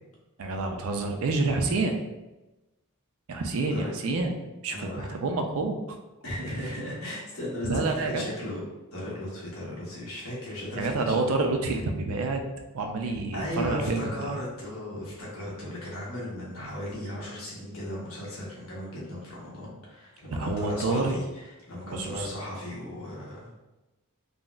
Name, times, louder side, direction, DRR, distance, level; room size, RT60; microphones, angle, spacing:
voice 1, 0.4-1.9 3.3-4.3 4.6-6.0 7.6-8.3 10.8-12.4 12.7-14.3 16.6-16.7 20.3-21.2 21.9-22.3, right 3 dB, 70° right, 4 dB, 0.4 m, -28 dB
voice 2, 4.7-5.1 6.2-8.6 8.9-11.2 13.3-23.6, left 1 dB, 70° left, -5 dB, 1.1 m, -36 dB
3.8 x 2.1 x 2.4 m, 1.0 s
head